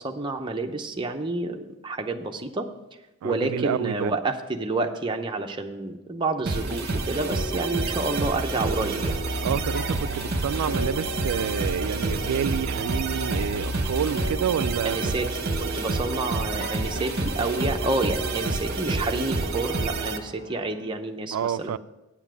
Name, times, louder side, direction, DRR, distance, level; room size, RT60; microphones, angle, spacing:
voice 1, 0.0-2.7 3.2-9.1 14.8-15.3 15.6-21.8, right 2 dB, 20° right, 0.7 m, -29 dB
voice 2, 3.2-4.1 9.4-15.0 21.3-21.8, right 8 dB, 80° right, 0.3 m, -28 dB
sound 1, 6.5-20.2, right 3 dB, 45° right, 0.9 m, -29 dB
sound 2, 7.2-20.9, right 1 dB, 90° left, 2.8 m, -38 dB
sound 3, 8.3-14.3, left 2 dB, 20° left, 0.4 m, -37 dB
9.0 x 7.1 x 6.0 m
head